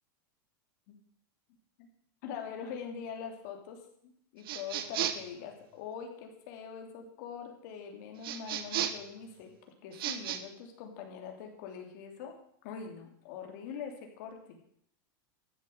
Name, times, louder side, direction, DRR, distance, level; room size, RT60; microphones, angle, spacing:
voice 1, 2.2-9.5 9.8-14.6, left 7 dB, 55° left, 3 dB, 3.0 m, -43 dB
sound 1, 4.4-5.3 8.2-9.1 9.9-10.4, right 10 dB, 75° right, 1.3 m, -34 dB
13.5 x 7.1 x 7.9 m, 0.69 s
supercardioid pair, 165°, 12 cm